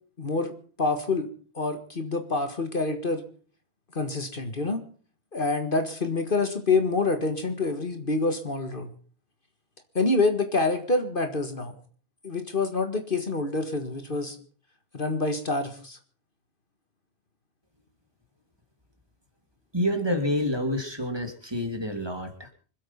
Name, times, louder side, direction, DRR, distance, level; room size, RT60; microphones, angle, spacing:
voice 1, 0.2-0.5 0.8-1.3 1.6-3.2 4.0-4.8 5.3-8.9 10.0-11.7 12.2-14.4 14.9-16.0, left 3 dB, 50° left, 7 dB, 1.9 m, -26 dB
voice 2, 19.7-22.5, left 1 dB, 20° right, 5 dB, 2.5 m, -28 dB
25.5 x 8.6 x 5.7 m, 0.42 s
omnidirectional pair, 1.2 m